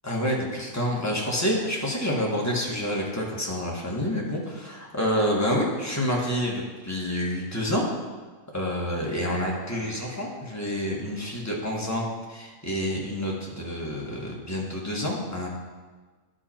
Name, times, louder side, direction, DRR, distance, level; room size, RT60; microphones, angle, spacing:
voice 1, 0.0-7.9 8.5-15.5, equal, 10° left, -3 dB, 1.2 m, -28 dB
11.5 x 5.2 x 4.4 m, 1.4 s
omnidirectional pair, 1.8 m